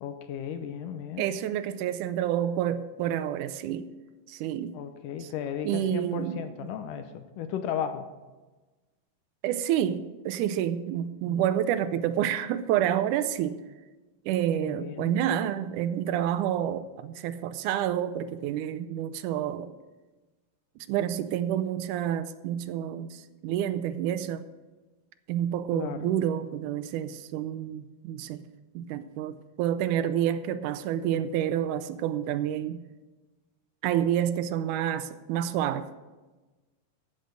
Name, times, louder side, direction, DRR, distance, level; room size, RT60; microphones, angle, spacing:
voice 1, 0.0-1.3 4.7-8.1 11.3-11.4 14.6-15.1 25.7-26.1, left 8 dB, 80° left, 9 dB, 2.2 m, -35 dB
voice 2, 1.2-3.9 4.3-4.7 5.2-5.3 5.6-6.4 9.4-13.6 14.3-19.7 20.9-24.5 25.3-28.4 28.8-32.8 33.8-35.9, right 10 dB, 80° right, 12 dB, 1.9 m, -29 dB
14.0 x 6.6 x 6.5 m, 1.2 s
omnidirectional pair, 4.0 m